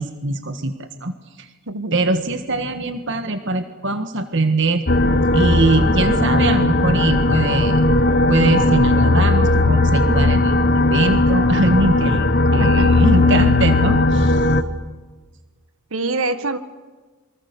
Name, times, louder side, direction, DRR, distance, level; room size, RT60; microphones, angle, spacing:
voice 1, 0.0-1.5 1.9-4.8 5.3-7.8 8.3-14.5, right 2 dB, 55° right, 8 dB, 1.6 m, -22 dB
voice 2, 1.7-2.4 12.6-13.0 15.9-16.6, right 2 dB, 70° right, 10 dB, 1.8 m, -26 dB
sound 1, 4.9-14.6, left 2 dB, 45° left, 1.5 m, -16 dB
27.5 x 24.5 x 6.8 m, 1.3 s
head